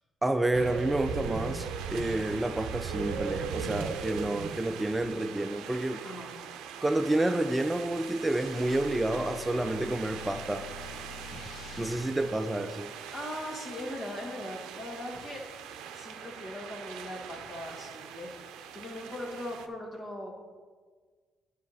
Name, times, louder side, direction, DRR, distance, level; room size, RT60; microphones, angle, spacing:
voice 1, 0.2-6.0 6.8-10.7 11.3-11.4 11.8-12.9, right 1 dB, 15° right, 7 dB, 0.4 m, -29 dB
sound 1, 0.5-19.7, right 7 dB, 85° right, 0.5 m, -40 dB
voice 2, 6.0-6.4 13.1-15.4 15.9-18.3 18.7-20.3, left 1 dB, 50° left, -1 dB, 2.1 m, -40 dB
sound 2, 8.0-13.3, left 3 dB, 65° left, 0.6 m, -47 dB
10.5 x 5.1 x 4.3 m, 1.5 s
supercardioid pair, 70°, 0 cm